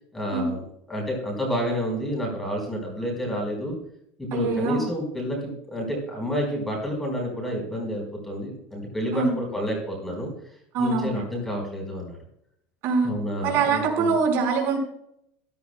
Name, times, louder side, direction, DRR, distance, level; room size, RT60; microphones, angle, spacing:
voice 1, 0.1-3.8 4.2-10.3 10.8-12.2 13.0-14.1, equal, 5° left, 0 dB, 4.4 m, -29 dB
voice 2, 4.3-4.8 9.1-9.3 10.7-11.2 12.8-13.1 13.4-14.8, right 4 dB, 55° right, 1 dB, 4.6 m, -23 dB
14.5 x 14.0 x 2.2 m, 0.72 s
supercardioid pair, 130°, 5 cm